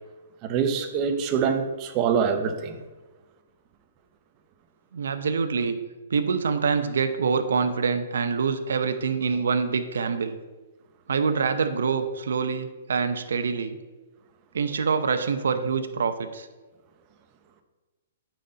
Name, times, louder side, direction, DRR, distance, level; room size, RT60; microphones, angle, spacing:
voice 1, 0.4-2.8, right 6 dB, 25° right, 0.7 m, -25 dB
voice 2, 4.9-5.8 6.1-10.4 11.1-13.8 14.5-16.5, right 5 dB, 85° right, 0.7 m, -25 dB
9.1 x 4.3 x 5.1 m
hypercardioid pair, 160°, 0 cm